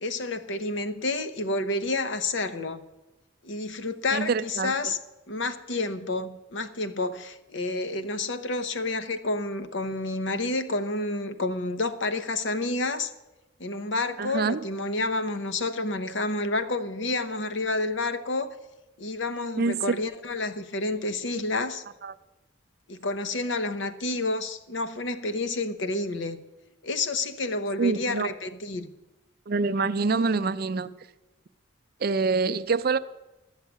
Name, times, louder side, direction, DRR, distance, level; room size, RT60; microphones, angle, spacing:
voice 1, 0.0-2.8 3.4-5.0 5.3-13.1 13.6-18.6 19.0-21.8 22.9-26.4 26.8-28.9, left 2 dB, 65° left, 0.9 m, -29 dB
voice 2, 4.1-4.9 14.2-14.6 19.6-19.9 22.0-22.1 27.8-28.3 29.5-30.9 32.0-33.0, right 4 dB, 50° right, 0.5 m, -26 dB
13.0 x 6.5 x 9.4 m
head